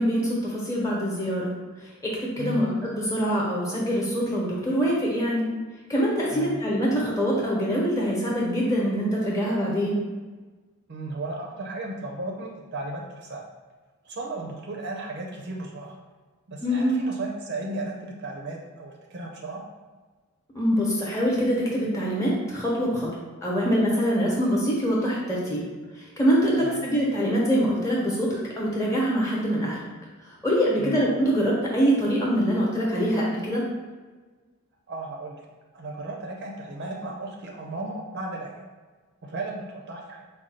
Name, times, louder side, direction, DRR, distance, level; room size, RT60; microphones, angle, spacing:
voice 1, 0.0-1.5 2.0-5.5 5.9-10.0 16.6-17.0 20.5-23.1 23.4-25.6 26.0-29.8 30.4-33.6, equal, 15° left, -4 dB, 1.0 m, -24 dB
voice 2, 10.9-13.4 14.0-16.0 16.5-19.6 26.6-26.8 30.8-31.0 34.9-35.4 35.7-38.6 39.2-40.2, right 2 dB, 50° right, 0 dB, 0.6 m, -35 dB
4.9 x 2.3 x 4.2 m, 1.3 s
head